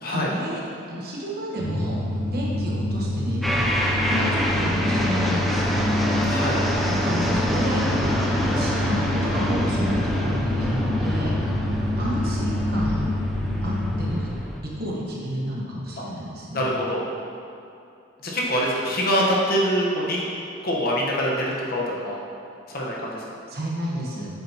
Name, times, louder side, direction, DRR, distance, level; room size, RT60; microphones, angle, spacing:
voice 1, 0.1-0.6 0.9-2.0 2.3-3.6 4.0-5.8 6.9-7.8 8.3-11.4 11.9-13.1 13.6-14.3 14.6-16.6 23.5-24.3, equal, 45° right, -4 dB, 1.3 m, -31 dB
sound 1, 1.6-14.1, left 1 dB, 30° left, 1.3 m, -27 dB
sound 2, 3.4-14.6, equal, ahead, 0.6 m, -26 dB
voice 2, 6.3-6.6 16.5-17.0 18.2-20.2 20.6-22.2 22.7-23.2, equal, 45° left, -4 dB, 1.2 m, -24 dB
8.4 x 7.3 x 3.0 m, 2.6 s
head